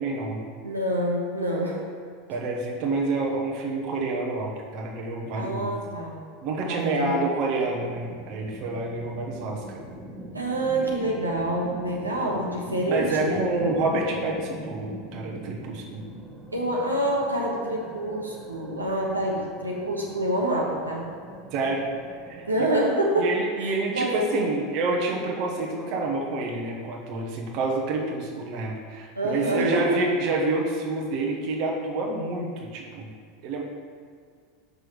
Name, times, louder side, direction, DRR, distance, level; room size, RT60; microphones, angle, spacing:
voice 1, 0.0-0.5 2.3-5.7 6.4-9.8 12.9-16.0 21.5-21.8 22.3-22.4 23.2-33.1 33.4-33.6, right 2 dB, 45° right, -1 dB, 1.1 m, -28 dB
voice 2, 0.6-1.8 5.4-6.1 6.6-7.2 10.3-13.4 16.5-21.1 22.5-24.3 29.1-30.0, right 1 dB, 85° right, -3 dB, 1.2 m, -27 dB
sound 1, 7.7-22.8, right 2 dB, 10° right, 1.2 m, -41 dB
6.6 x 6.1 x 4.9 m, 2.1 s
figure-of-eight pair, 80°, 0 cm